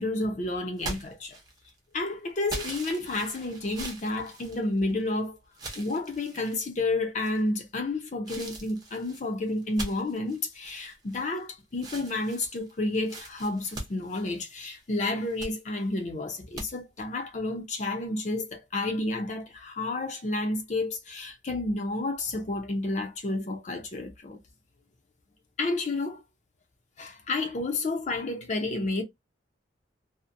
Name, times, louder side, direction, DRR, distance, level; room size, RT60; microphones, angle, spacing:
voice 1, 0.0-1.4 1.9-5.4 5.7-24.4 25.6-26.2 27.0-29.0, left 2 dB, 40° left, 0.5 m, -30 dB
sound 1, 0.8-1.8 2.5-5.1 5.5-6.6 7.2-7.7 8.2-11.4 11.7-14.7 15.1-15.6 16.5-16.7, right 2 dB, 20° right, 0.6 m, -41 dB
2.7 x 2.1 x 2.4 m
head